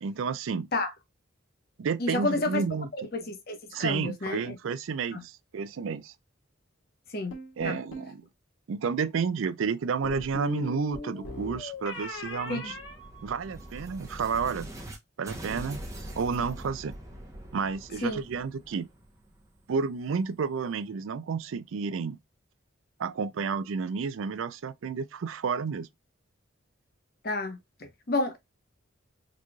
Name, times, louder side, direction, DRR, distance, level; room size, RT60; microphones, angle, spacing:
voice 1, 0.0-0.7 1.8-2.9 3.7-6.1 7.6-8.3 8.7-12.7 13.2-14.7 15.2-15.8 16.2-16.9 17.5-18.9 19.7-22.2 23.0-25.9, right 5 dB, 80° right, 0.4 m, -31 dB
voice 2, 2.0-2.6 3.1-4.6 5.1-5.2 7.1-7.3 7.6-7.8 12.5-12.7 18.0-18.2 27.2-28.4, left 2 dB, 50° left, 0.8 m, -30 dB
sound 1, 7.3-8.1 10.0-13.8, left 2 dB, 75° left, 1.6 m, -39 dB
sound 2, 11.6-15.0 15.2-20.0, right 1 dB, 15° right, 0.8 m, -43 dB
3.9 x 3.0 x 2.2 m
head